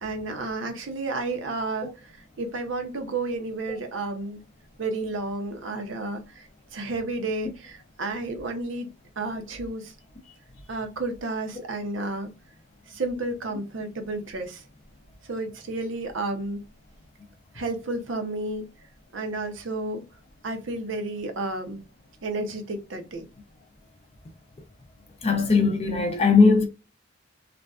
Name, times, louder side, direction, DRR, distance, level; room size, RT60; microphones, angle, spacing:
voice 1, 0.0-4.4 4.8-8.9 9.2-9.9 10.7-12.3 12.9-14.6 15.2-16.6 17.5-18.6 19.1-20.0 20.4-21.8 22.2-23.3, right 2 dB, 85° right, 0.7 m, -31 dB
voice 2, 25.2-26.7, left 4 dB, 35° left, 0.5 m, -19 dB
2.4 x 2.2 x 2.3 m
head